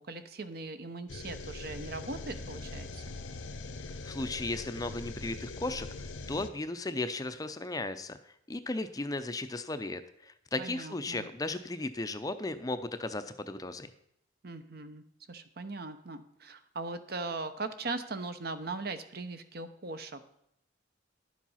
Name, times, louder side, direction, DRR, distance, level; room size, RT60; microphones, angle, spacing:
voice 1, 0.0-3.2 10.6-11.3 14.4-20.2, right 3 dB, 55° right, 9 dB, 0.9 m, -40 dB
sound 1, 1.1-6.5, left 3 dB, 85° left, 0.9 m, -42 dB
voice 2, 4.0-5.9 6.3-8.2 8.5-13.9, left 2 dB, 20° left, 10 dB, 0.5 m, -35 dB
11.0 x 7.4 x 5.6 m, 0.76 s
head